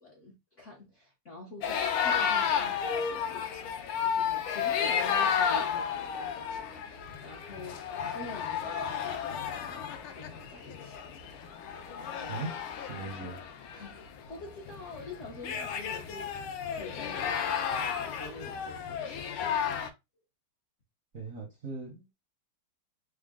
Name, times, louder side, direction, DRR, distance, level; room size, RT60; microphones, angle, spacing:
voice 1, 0.0-3.7 4.1-9.8 10.1-11.0 12.0-12.4 13.7-16.3 16.8-19.5, left 2 dB, 60° left, 0.7 m, -47 dB
sound 1, 1.6-19.9, left 7 dB, 80° left, 1.4 m, -32 dB
voice 2, 12.8-13.4 21.1-22.1, right 4 dB, 60° right, 0.9 m, -39 dB
3.9 x 2.0 x 3.6 m
omnidirectional pair, 2.4 m